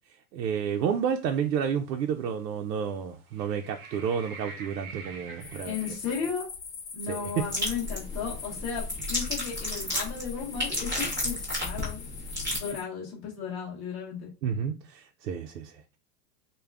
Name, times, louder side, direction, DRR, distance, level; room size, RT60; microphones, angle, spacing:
voice 1, 0.3-5.8 7.1-7.5 14.4-16.0, right 7 dB, 80° right, 0.6 m, -30 dB
sound 1, 0.9-1.1 1.9-2.0 3.3-6.0, right 4 dB, 60° right, 0.8 m, -45 dB
sound 2, 5.4-12.8, left 6 dB, 35° left, 0.9 m, -42 dB
voice 2, 5.6-6.5 6.9-12.2 12.5-14.3, left 7 dB, 10° left, 0.9 m, -35 dB
sound 3, 7.4-12.6, left 1 dB, 5° right, 0.7 m, -32 dB
3.5 x 2.3 x 3.3 m
supercardioid pair, 180°, 49 cm